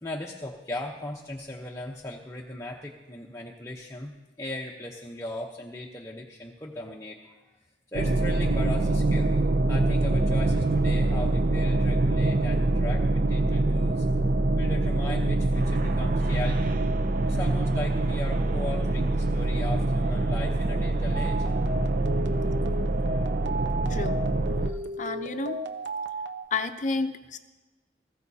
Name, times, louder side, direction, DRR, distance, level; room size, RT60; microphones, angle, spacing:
voice 1, 0.0-7.3 7.9-14.0 14.6-16.7 17.2-21.5 24.7-24.8, left 1 dB, 15° left, -2 dB, 0.9 m, -38 dB
sound 1, 7.9-24.7, right 2 dB, 50° right, 0.5 m, -25 dB
sound 2, 21.1-26.5, right 1 dB, 70° right, 1.0 m, -35 dB
voice 2, 23.9-24.2 25.0-25.6 26.5-27.4, left 4 dB, 40° left, 9 dB, 0.6 m, -30 dB
20.0 x 15.0 x 2.8 m, 1.2 s
head